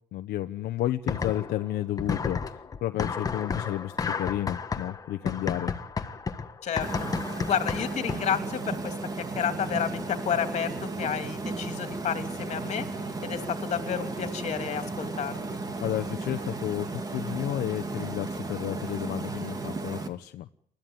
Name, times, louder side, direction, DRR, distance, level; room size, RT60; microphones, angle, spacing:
voice 1, 0.1-5.7 15.8-20.5, left 13 dB, 70° left, 8 dB, 1.0 m, -32 dB
sound 1, 1.1-1.7 2.0-8.4, left 5 dB, 20° left, 1.4 m, -32 dB
sound 2, 6.8-20.1, right 3 dB, 20° right, 2.1 m, -34 dB
voice 2, 7.5-9.0 9.3-12.9 13.2-15.3, left 8 dB, 40° left, 7 dB, 3.1 m, -30 dB
29.5 x 13.5 x 9.5 m, 0.67 s
cardioid pair, 180°, 17 cm